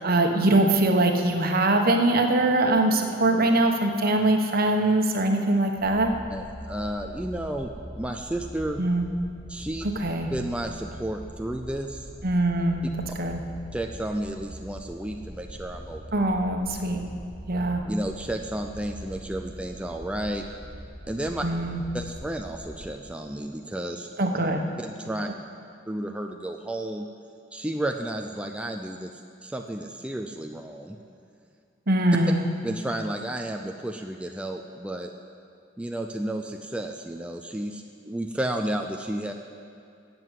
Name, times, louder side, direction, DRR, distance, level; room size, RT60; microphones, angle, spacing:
voice 1, 0.0-6.1 8.8-9.1 9.8-10.3 12.2-12.9 13.2-13.4 16.1-17.0 17.5-17.8 21.4-21.8 24.2-24.6 31.9-32.5, right 2 dB, 55° right, 4 dB, 1.2 m, -22 dB
sound 1, 5.8-22.9, equal, 20° left, 2.1 m, -42 dB
voice 2, 6.3-8.8 9.5-9.9 10.3-12.1 13.7-16.0 17.9-20.5 21.1-21.4 21.9-24.1 24.8-25.3 25.9-27.1 27.5-29.1 29.4-31.0 32.6-35.1 35.8-39.3, right 1 dB, 5° right, 3 dB, 0.5 m, -32 dB
12.5 x 7.7 x 8.2 m, 2.4 s
head